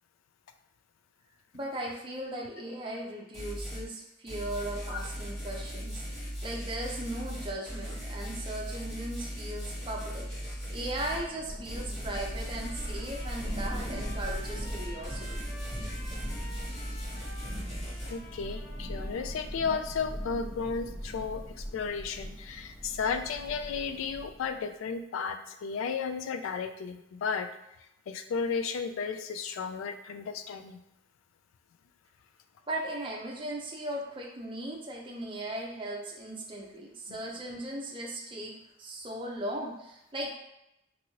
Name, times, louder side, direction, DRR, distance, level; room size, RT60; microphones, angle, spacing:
voice 1, 1.5-15.5 32.7-38.5 38.8-40.4, right 1 dB, 25° right, -1 dB, 0.5 m, -38 dB
sound 1, 3.3-3.9 4.3-11.3 11.6-18.1, equal, 35° left, 1.1 m, -38 dB
Thunder / Rain, 10.6-24.6, equal, 5° left, 0.8 m, -41 dB
Trumpet, 12.5-19.6, equal, 55° left, 0.7 m, -50 dB
voice 2, 16.7-17.1 17.5-17.6 18.1-27.5 28.1-30.8 37.1-37.2, left 5 dB, 85° left, 9 dB, 0.3 m, -34 dB
2.9 x 2.6 x 2.8 m, 0.84 s
head